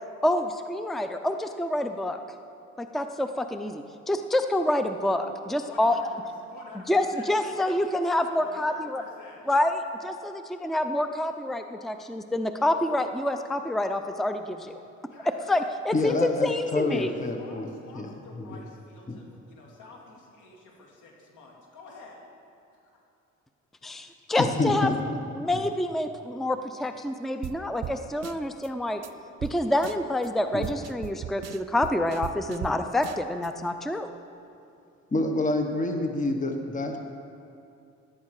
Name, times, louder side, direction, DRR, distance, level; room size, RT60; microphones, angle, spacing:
voice 1, 0.2-2.2 2.8-6.0 6.9-9.0 9.5-14.7 15.5-17.1 23.8-24.9 25.3-29.0 29.4-34.1, left 1 dB, ahead, 8 dB, 0.5 m, -27 dB
voice 2, 5.6-7.7 8.2-9.4 15.1-15.5 17.3-22.2 22.8-23.0, left 3 dB, 80° left, -2 dB, 3.0 m, -49 dB
voice 3, 15.9-18.6 19.1-19.2 24.4-25.6 30.5-30.7 35.1-37.0, left 2 dB, 25° left, 5 dB, 1.3 m, -28 dB
sound 1, 27.4-27.6 27.8-28.0 28.2-28.7 29.0-29.1 29.4-29.5 29.8-30.3 30.6-32.7 33.0-33.5, right 11 dB, 60° right, 0.7 m, -37 dB
17.0 x 11.5 x 4.8 m, 2.6 s
cardioid pair, 90°, 30 cm